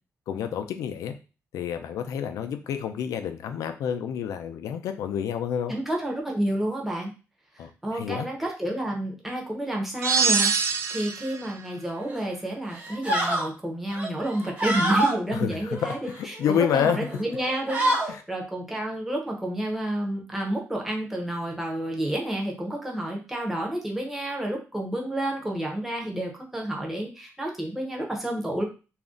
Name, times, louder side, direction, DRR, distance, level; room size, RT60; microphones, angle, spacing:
voice 1, 0.3-1.1 1.5-5.7 7.6-8.3 15.3-17.0 18.1-18.2, left 8 dB, 85° left, 7 dB, 0.4 m, -29 dB
voice 2, 5.7-7.1 7.6-28.6, right 1 dB, 5° right, -1 dB, 0.6 m, -30 dB
sound 1, 10.0-11.4, right 5 dB, 60° right, 0.3 m, -23 dB
sound 2, 12.0-12.3 12.7-13.5 13.9-15.2 15.7-16.6 17.0-17.2 17.5-18.1, right 1 dB, 30° right, 0.9 m, -26 dB
2.4 x 2.1 x 3.7 m, 0.32 s
wide cardioid pair, 180°, 5 cm